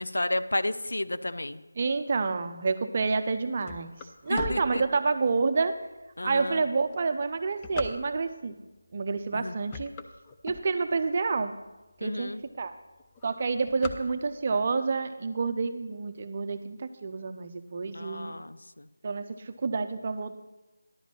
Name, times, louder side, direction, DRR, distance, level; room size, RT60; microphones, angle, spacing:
voice 1, 0.0-1.6 4.3-4.8 6.2-6.6 9.3-9.5 12.0-12.4 17.9-18.9, left 1 dB, 80° left, 12 dB, 0.5 m, -32 dB
voice 2, 1.8-4.0 4.2-5.8 6.2-8.6 8.9-9.9 10.4-11.5 12.0-12.7 13.2-18.3 19.0-20.4, right 4 dB, 35° right, 9 dB, 0.6 m, -29 dB
sound 1, 3.2-5.4 6.0-6.1 6.8-8.5 9.1-9.3 9.6-11.2 11.7-11.8 12.0-12.1 12.4-12.7 13.0-14.6, left 5 dB, 15° left, 0.4 m, -40 dB
11.0 x 5.1 x 7.3 m, 1.1 s
figure-of-eight pair, 165°, 0 cm